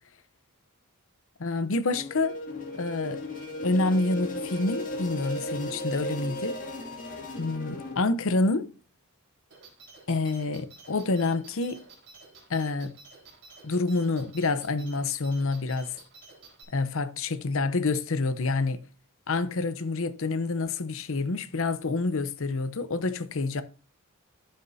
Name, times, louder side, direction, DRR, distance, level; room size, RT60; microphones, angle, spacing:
voice 1, 1.4-2.3 2.7-3.2 3.6-6.6 7.4-8.7 10.1-11.8 12.5-12.9 13.6-16.0 16.7-18.8 19.3-23.6, left 3 dB, 65° left, 0.8 m, -27 dB
sound 1, 1.9-7.9, left 1 dB, 40° left, 2.2 m, -35 dB
sound 2, 9.5-16.6, right 3 dB, 55° right, 4.1 m, -51 dB
11.5 x 8.0 x 2.7 m
head